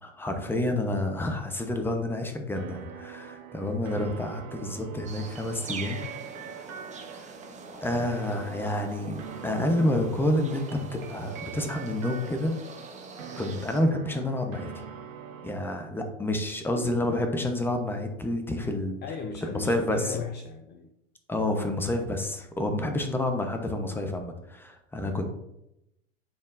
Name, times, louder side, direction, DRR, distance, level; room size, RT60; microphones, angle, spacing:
voice 1, 0.0-6.1 6.4-6.7 7.1-7.3 7.8-12.6 13.4-14.8 15.4-19.0 19.5-20.2 21.3-25.3, left 1 dB, 5° left, 5 dB, 0.9 m, -29 dB
sound 1, 2.5-15.5, right 7 dB, 80° right, 1.0 m, -43 dB
sound 2, 5.1-13.8, right 4 dB, 15° right, 1.2 m, -44 dB
voice 2, 19.0-20.9, left 5 dB, 25° left, 5 dB, 0.6 m, -37 dB
10.5 x 4.3 x 2.6 m, 0.85 s
hypercardioid pair, 95°, 40 cm